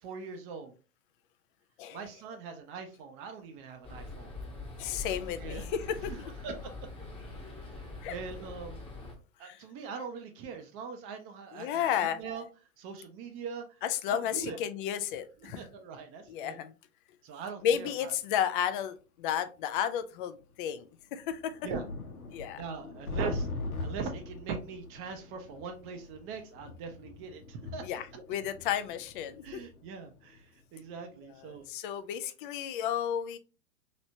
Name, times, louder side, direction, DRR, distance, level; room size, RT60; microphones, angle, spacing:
voice 1, 0.0-0.7 1.9-4.3 5.4-5.7 6.1-6.2 6.4-6.7 7.4-8.8 9.4-11.7 12.0-12.5 12.8-13.6 14.1-14.6 15.4-16.6 17.2-18.1 21.6-21.8 22.5-23.5 23.8-27.8 28.1-28.2 29.4-31.7, right 5 dB, 30° right, 6 dB, 0.6 m, -41 dB
sound 1, 3.8-9.1, left 3 dB, 15° left, 1.0 m, -43 dB
voice 2, 4.8-6.3 8.0-8.2 9.4-9.6 11.5-12.2 13.8-15.6 16.3-16.7 17.6-21.6 22.3-22.6 27.8-29.6 31.4-33.4, left 9 dB, 40° left, 11 dB, 0.4 m, -33 dB
sound 2, 17.6-17.7 18.7-18.8 20.0-20.1 20.4-20.5 21.0-31.1 31.5-31.7, left 3 dB, 85° left, 0.9 m, -42 dB
3.1 x 3.0 x 2.6 m, 0.33 s
hypercardioid pair, 105°, 42 cm